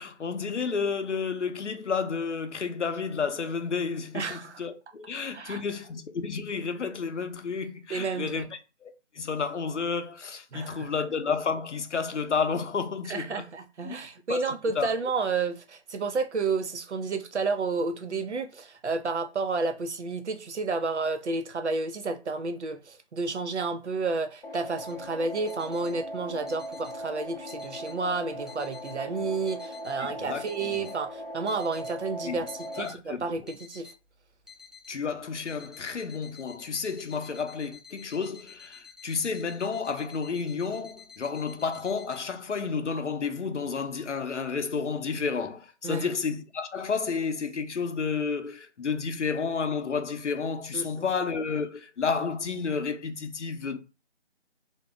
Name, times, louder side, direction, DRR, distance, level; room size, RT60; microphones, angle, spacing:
voice 1, 0.0-8.5 8.8-13.5 13.8-13.9 14.3-14.5 14.8-14.9 30.2-30.9 32.2-32.4 32.8-33.2 34.9-53.8, left 5 dB, 90° left, 0.7 m, -31 dB
voice 2, 4.1-4.6 5.3-5.6 7.9-8.5 10.5-10.9 13.1-33.9 45.8-46.1 50.7-51.0, right 4 dB, 75° right, 0.7 m, -31 dB
sound 1, 24.4-32.8, equal, 50° left, 0.5 m, -39 dB
sound 2, 24.9-42.2, left 6 dB, ahead, 0.3 m, -51 dB
2.7 x 2.3 x 3.4 m
figure-of-eight pair, 170°, 35 cm